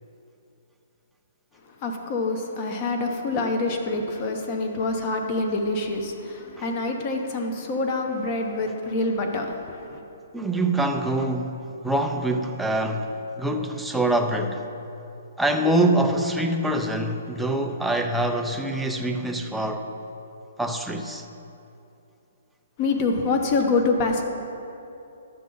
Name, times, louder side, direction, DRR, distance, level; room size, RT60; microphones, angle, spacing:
voice 1, 1.8-10.0 22.8-24.2, left 3 dB, 30° left, 3 dB, 1.0 m, -26 dB
voice 2, 10.3-14.6 15.4-19.9 20.6-21.3, right 1 dB, ahead, 3 dB, 0.5 m, -25 dB
12.0 x 7.4 x 3.9 m, 2.8 s
hypercardioid pair, 160°, 0 cm